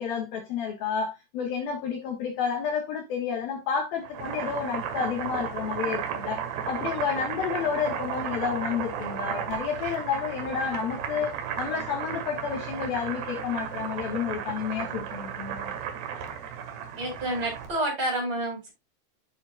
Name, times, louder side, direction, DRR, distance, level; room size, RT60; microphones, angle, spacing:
voice 1, 0.0-6.4 6.7-11.3 11.6-15.7, left 7 dB, 65° left, 2.9 m, -30 dB
Boiling, 4.0-17.8, right 8 dB, 70° right, 3.5 m, -34 dB
voice 2, 17.0-18.7, right 1 dB, 30° right, 5.3 m, -29 dB
10.5 x 7.3 x 2.4 m
omnidirectional pair, 5.1 m